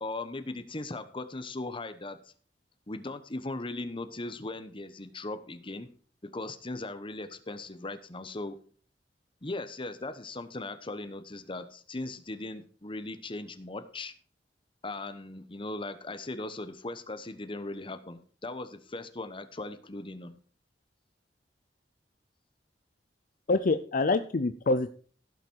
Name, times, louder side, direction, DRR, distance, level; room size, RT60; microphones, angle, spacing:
voice 1, 0.0-2.2 2.9-5.9 6.2-8.6 9.4-14.1 14.8-20.3, left 2 dB, 30° left, 10 dB, 1.0 m, -38 dB
voice 2, 23.5-24.9, left 3 dB, 50° left, 11 dB, 0.5 m, -26 dB
16.0 x 6.0 x 4.6 m, 0.43 s
head